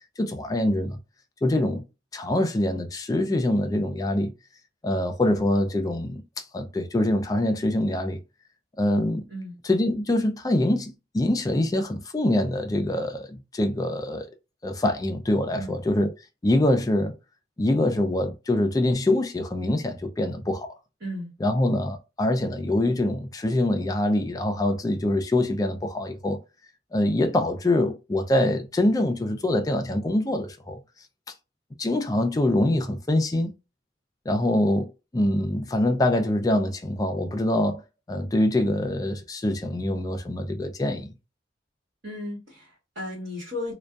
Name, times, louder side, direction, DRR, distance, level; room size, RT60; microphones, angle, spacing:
voice 1, 0.2-1.0 1.4-1.8 2.1-4.3 4.8-8.2 8.8-9.2 9.6-14.3 14.6-16.1 16.4-17.1 17.6-20.7 21.4-26.4 26.9-30.8 31.8-33.5 34.3-37.8 38.1-41.1, left 1 dB, 20° left, 0.3 m, -24 dB
voice 2, 21.0-21.3 42.0-43.7, left 1 dB, 60° right, 1.3 m, -35 dB
2.5 x 2.2 x 2.2 m
head